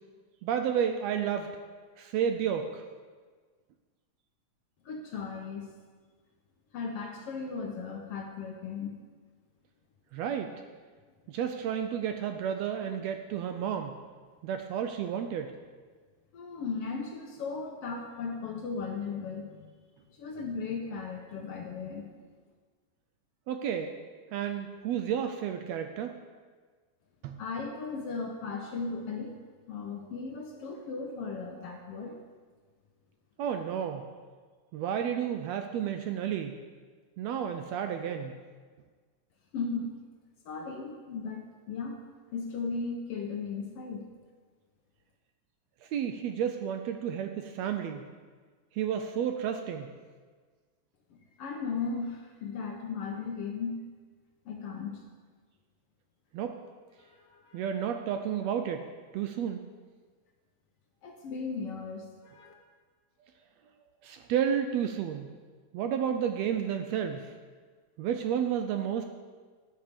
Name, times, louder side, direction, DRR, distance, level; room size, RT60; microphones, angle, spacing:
voice 1, 0.4-1.6 2.0-2.8 10.1-10.5 11.3-13.9 14.4-15.5 23.5-24.0 24.3-26.2 27.2-27.4 33.4-34.1 34.7-36.5 37.2-38.3 45.9-48.0 48.7-49.9 56.3-56.6 57.5-58.9 59.1-59.6 64.0-65.3 65.7-67.3 68.0-69.1, right 8 dB, 80° right, 6 dB, 1.6 m, -31 dB
voice 2, 4.8-5.7 6.7-9.0 16.3-19.7 20.1-22.1 27.4-29.4 29.7-32.2 39.5-40.0 40.4-42.0 42.3-44.1 51.1-53.9 54.4-55.0 57.0-57.7 61.0-62.5, left 4 dB, 70° left, 2 dB, 1.5 m, -36 dB
9.5 x 5.7 x 6.6 m, 1.5 s
omnidirectional pair, 3.3 m